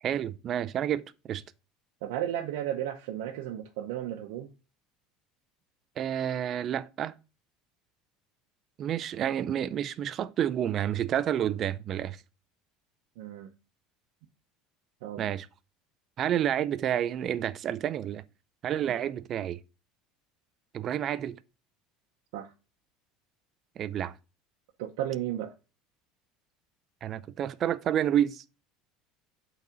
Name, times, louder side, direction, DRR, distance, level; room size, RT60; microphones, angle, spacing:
voice 1, 0.0-1.4 6.0-7.1 8.8-12.2 15.2-15.5 16.2-18.2 18.6-19.6 20.7-21.4 23.8-24.1 27.0-28.4, right 10 dB, 35° right, 0.4 m, -29 dB
voice 2, 2.0-4.5 13.2-13.5 15.0-15.2 18.9-19.0 22.3-22.5 24.8-25.5, right 11 dB, 85° right, 0.8 m, -34 dB
8.4 x 4.0 x 5.1 m
cardioid pair, 165°, 0 cm